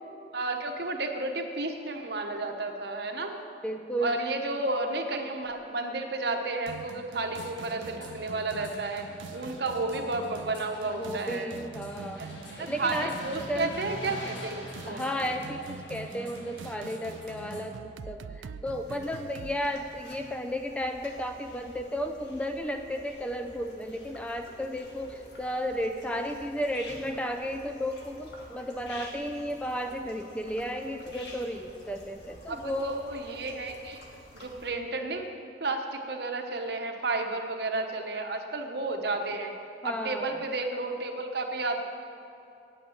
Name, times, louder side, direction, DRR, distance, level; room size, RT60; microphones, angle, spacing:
voice 1, 0.3-3.4 4.0-9.0 9.3-11.5 12.2-15.0 32.5-34.0 34.3-35.2 35.6-39.6 39.8-41.8, right 2 dB, 60° right, 4 dB, 1.0 m, -32 dB
voice 2, 3.6-4.2 11.0-12.3 12.6-13.2 13.5-13.7 14.9-33.0 39.8-40.4, equal, 5° left, 5 dB, 0.4 m, -33 dB
sound 1, 6.7-19.6, right 5 dB, 90° right, 0.4 m, -45 dB
sound 2, 7.3-17.6, left 1 dB, 85° left, 1.8 m, -45 dB
sound 3, 18.7-34.7, left 1 dB, 70° left, 1.7 m, -50 dB
8.9 x 8.8 x 7.2 m, 2.7 s
head